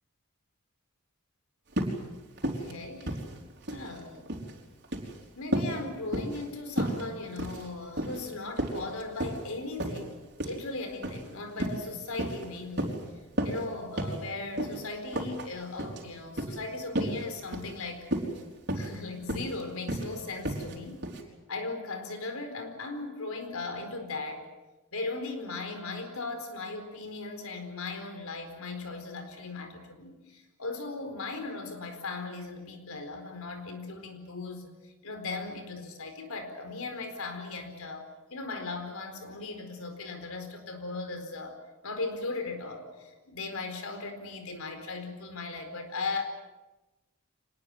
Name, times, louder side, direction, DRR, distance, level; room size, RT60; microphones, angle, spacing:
sound 1, 1.7-2.0 2.4-2.7 3.0-3.9 4.2-4.5 4.8-5.1 5.5-5.8 6.1-6.4 6.8-7.0 7.4-7.7 8.0-8.2 8.6-9.4 9.8-10.0 10.4-10.6 11.0-11.2 11.6-11.8 12.2-12.5 12.8-13.0 13.4-13.6 14.0-14.2 14.6-14.8 15.1-15.5 15.8-16.0 16.4-16.6 17.0-17.2 17.5-17.7 18.1-18.4 18.7-19.0 19.3-19.6 19.9-20.1 20.5-20.8 21.0-21.2, right 1 dB, 50° right, 4.3 m, -32 dB
voice 1, 2.4-3.2 3.7-4.3 5.4-13.0 13.4-18.1 18.7-21.1 21.5-24.5 24.9-34.7 35.0-41.6 41.8-46.2, left 3 dB, 85° left, 7 dB, 4.5 m, -38 dB
25.0 x 20.5 x 8.0 m, 1.1 s
head